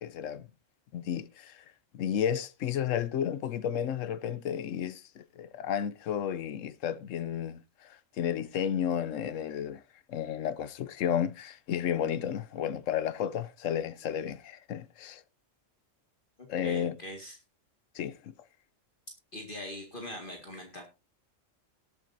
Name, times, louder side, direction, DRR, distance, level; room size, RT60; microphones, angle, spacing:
voice 1, 0.0-0.5 0.9-1.6 1.9-7.6 8.2-9.8 10.1-15.2 16.5-17.0 17.9-18.3, left 9 dB, 80° left, 1.1 m, -32 dB
voice 2, 16.4-17.4 19.3-20.8, left 1 dB, 40° left, 2.3 m, -42 dB
19.0 x 8.4 x 2.7 m
omnidirectional pair, 1.3 m